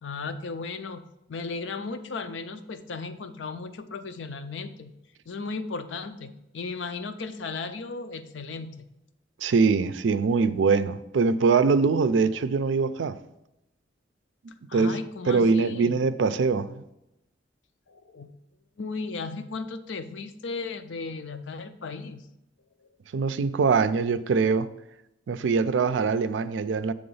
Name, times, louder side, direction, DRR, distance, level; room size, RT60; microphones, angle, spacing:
voice 1, 0.0-4.9 5.3-8.9 14.7-16.0 17.9-18.3 18.8-22.3, left 4 dB, 85° left, 0.5 m, -36 dB
voice 2, 9.4-13.2 14.7-14.9 15.3-16.8 23.1-24.7 25.3-26.9, right 4 dB, 90° right, 0.4 m, -23 dB
7.8 x 3.5 x 5.4 m
head